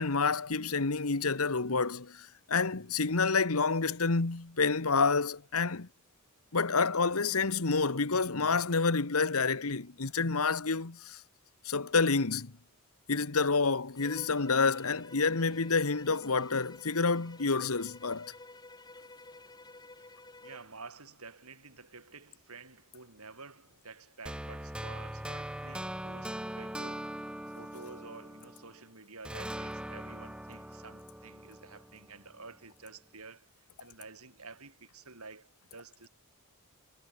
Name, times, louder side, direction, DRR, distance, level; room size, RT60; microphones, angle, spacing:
voice 1, 0.0-5.9 6.5-11.2 11.6-12.5 13.1-18.3, left 4 dB, 70° left, 1.3 m, -28 dB
Bowed string instrument, 14.0-20.7, left 2 dB, 20° left, 7.2 m, -52 dB
voice 2, 20.4-27.1 27.5-36.1, right 4 dB, 75° right, 6.8 m, -50 dB
sound 1, 24.3-28.8 29.3-32.3, right 1 dB, 5° right, 0.9 m, -41 dB
head